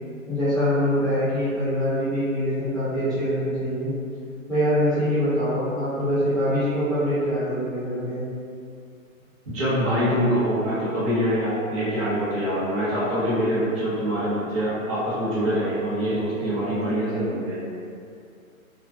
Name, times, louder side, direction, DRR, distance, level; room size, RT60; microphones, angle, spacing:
voice 1, 0.3-3.9 4.5-8.2, equal, ahead, -17 dB, 0.7 m, -24 dB
voice 2, 9.5-17.6, equal, 25° right, -11 dB, 0.9 m, -24 dB
2.3 x 2.1 x 2.6 m, 2.4 s
figure-of-eight pair, 125°, 42 cm